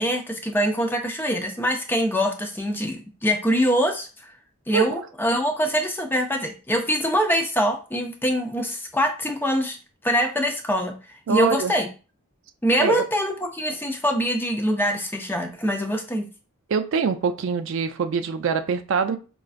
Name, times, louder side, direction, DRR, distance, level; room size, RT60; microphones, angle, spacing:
voice 1, 0.0-4.1 4.7-9.8 10.0-10.9 11.3-11.9 12.6-16.3, equal, 10° left, 4 dB, 0.5 m, -24 dB
voice 2, 11.3-11.7 12.8-13.1 16.7-19.2, right 6 dB, 60° right, 8 dB, 0.4 m, -24 dB
5.1 x 2.3 x 2.4 m, 0.34 s
head